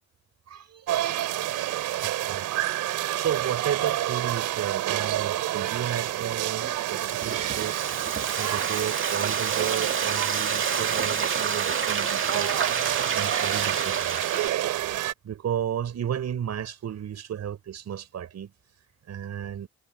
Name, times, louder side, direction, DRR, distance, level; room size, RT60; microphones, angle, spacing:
voice 1, 0.5-0.9 2.0-2.5 2.9-7.9 8.3-12.6 13.1-14.2 15.2-18.5 19.1-19.7, right 9 dB, 60° right, 5.3 m, -33 dB
sound 1, 0.9-15.1, right 13 dB, 85° right, 2.8 m, -29 dB
Frying (food), 6.6-14.5, right 6 dB, 40° right, 2.3 m, -29 dB
cardioid pair, 90°, 30 cm